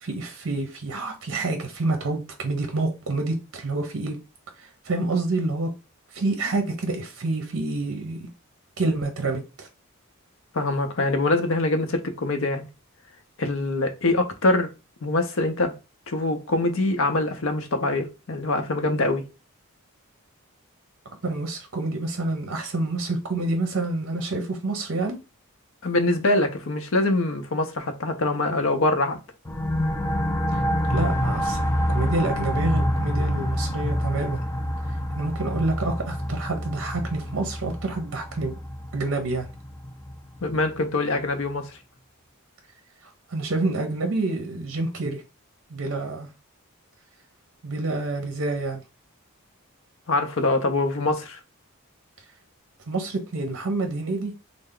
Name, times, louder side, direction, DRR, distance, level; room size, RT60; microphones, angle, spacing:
voice 1, 0.0-4.2 4.6-5.7 6.1-8.3 8.8-9.7 21.2-25.2 30.5-30.6 30.9-31.6 31.9-34.4 35.2-38.5 38.9-39.5 43.0-45.2 45.7-46.3 47.6-48.8 52.9-54.3, right 2 dB, 60° right, 0.7 m, -28 dB
voice 2, 10.5-12.7 13.4-14.7 15.0-15.7 16.1-19.2 25.8-29.2 40.4-41.7 50.1-51.4, left 2 dB, 60° left, 0.6 m, -24 dB
sound 1, 29.5-40.8, equal, 10° left, 0.3 m, -27 dB
3.2 x 2.0 x 3.7 m
head